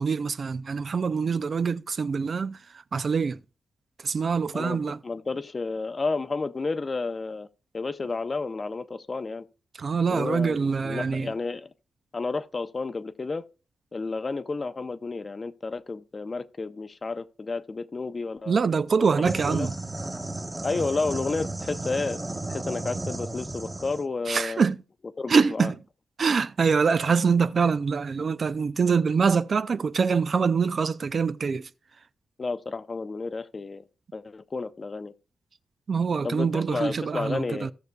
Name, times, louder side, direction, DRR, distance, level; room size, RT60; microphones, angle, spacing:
voice 1, 0.0-3.4 4.0-5.0 9.8-11.3 18.5-19.7 24.3-24.8 25.3-25.7 26.2-31.7 35.9-37.7, right 5 dB, 50° right, 0.4 m, -24 dB
voice 2, 4.5-7.5 7.7-9.4 10.1-11.7 12.1-13.4 13.9-18.6 19.0-19.7 20.6-22.2 22.5-24.6 25.2-25.7 32.4-33.8 34.1-35.1 36.2-37.7, left 3 dB, 35° left, 0.7 m, -31 dB
sound 1, 19.2-24.1, right 2 dB, 20° right, 1.2 m, -34 dB
16.5 x 6.5 x 2.3 m
cardioid pair, 100°, 0 cm